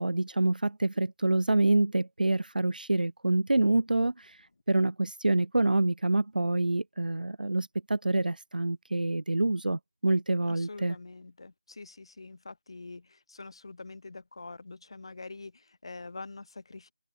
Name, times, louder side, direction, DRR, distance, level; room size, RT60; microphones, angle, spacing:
voice 1, 0.0-11.0, right 2 dB, 80° right, 1.5 m, -27 dB
voice 2, 10.5-16.9, left 3 dB, 35° left, 2.2 m, -45 dB
figure-of-eight pair, 175°, 5 cm